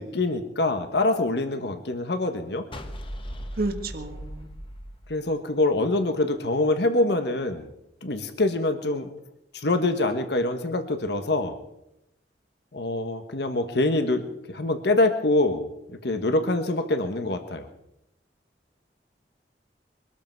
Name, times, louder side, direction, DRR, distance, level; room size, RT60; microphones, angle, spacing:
voice 1, 0.0-2.6 5.1-7.7 8.0-9.1 9.5-11.6 12.7-15.7 16.0-17.7, left 2 dB, 70° left, 7 dB, 1.4 m, -25 dB
sound 1, 2.7-5.9, equal, 30° left, 1.4 m, -38 dB
voice 2, 3.5-4.5, right 2 dB, 60° right, 5 dB, 1.6 m, -31 dB
23.0 x 13.5 x 4.7 m, 0.82 s
head